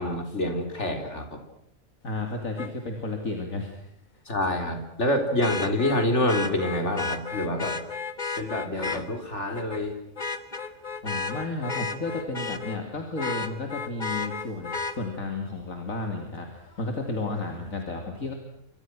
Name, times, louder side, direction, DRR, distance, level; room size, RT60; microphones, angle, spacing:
voice 1, 0.0-1.4 4.3-7.8 8.4-10.0, left 1 dB, 55° left, 5 dB, 4.3 m, -27 dB
voice 2, 2.0-3.9 11.0-18.3, left 2 dB, 80° left, 3 dB, 3.2 m, -32 dB
Vehicle horn car horn honking, 2.6-2.7 5.4-9.0 9.5-9.8 10.2-12.8 13.2-14.9 16.8-16.9, left 4 dB, 35° left, 1.6 m, -32 dB
29.0 x 25.0 x 6.2 m, 0.72 s
omnidirectional pair, 1.4 m